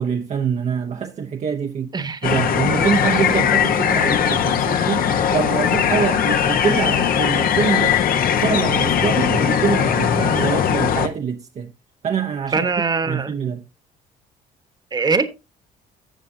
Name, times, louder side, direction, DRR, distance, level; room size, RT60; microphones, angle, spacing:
voice 1, 0.0-2.0 2.2-8.0 8.4-11.7 12.0-12.7 13.1-13.6, right 7 dB, 40° right, 0.8 m, -25 dB
voice 2, 1.9-2.9 3.3-3.4 12.5-13.3 14.9-15.3, right 4 dB, 25° right, 1.2 m, -23 dB
sound 1, 2.2-11.1, left 8 dB, 60° left, 1.1 m, -19 dB
12.5 x 7.5 x 2.7 m
cardioid pair, 110°, 17 cm